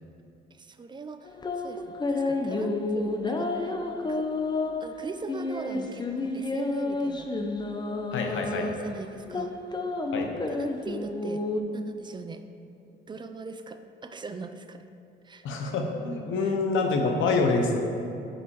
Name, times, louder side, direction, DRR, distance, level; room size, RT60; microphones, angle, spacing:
voice 1, 0.6-1.3 1.6-3.8 4.1-4.3 4.8-6.1 6.3-7.3 8.3-9.5 10.5-11.4 11.7-12.4 13.1-14.8 15.2-15.5, right 3 dB, 25° right, 9 dB, 0.4 m, -40 dB
sound 1, 1.3-11.6, left 2 dB, 20° left, 0.6 m, -30 dB
voice 2, 8.1-8.7 10.1-10.3 15.4-17.8, left 3 dB, 80° left, 3 dB, 0.9 m, -26 dB
5.6 x 5.6 x 4.6 m, 2.7 s
cardioid pair, 90°, 20 cm